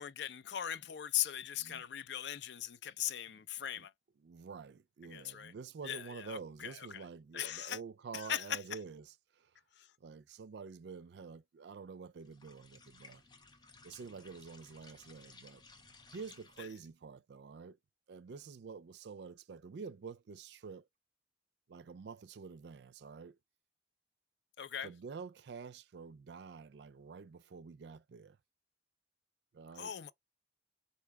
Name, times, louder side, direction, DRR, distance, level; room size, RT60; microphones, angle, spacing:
voice 1, 0.0-3.9 5.1-5.5 5.8-7.0 7.3-7.8 8.1-8.6 9.8-9.9 24.6-24.9 29.8-30.1, left 10 dB, 75° left, 0.4 m, -39 dB
voice 2, 4.2-9.5 10.0-13.2 13.8-15.6 16.1-17.8 18.1-20.9 21.7-23.4 24.8-28.4 29.5-29.9, right 5 dB, 70° right, 0.4 m, -48 dB
sound 1, 12.2-16.9, left 3 dB, 25° left, 0.7 m, -59 dB
4.6 x 2.7 x 3.4 m
head